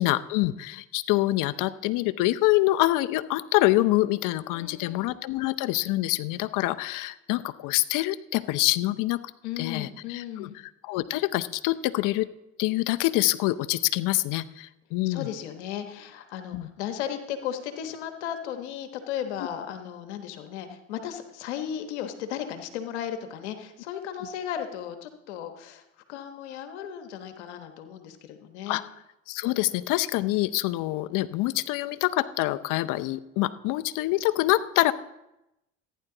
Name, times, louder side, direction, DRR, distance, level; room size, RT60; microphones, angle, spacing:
voice 1, 0.0-9.2 9.6-10.5 10.8-12.3 12.6-15.3 16.5-16.7 28.7-28.8 29.3-34.9, left 17 dB, 70° left, 14 dB, 0.7 m, -26 dB
voice 2, 4.5-5.1 9.4-10.6 15.0-25.8 26.1-28.8, left 9 dB, 90° left, 7 dB, 1.2 m, -35 dB
14.5 x 10.0 x 3.8 m, 0.90 s
supercardioid pair, 80°, 33 cm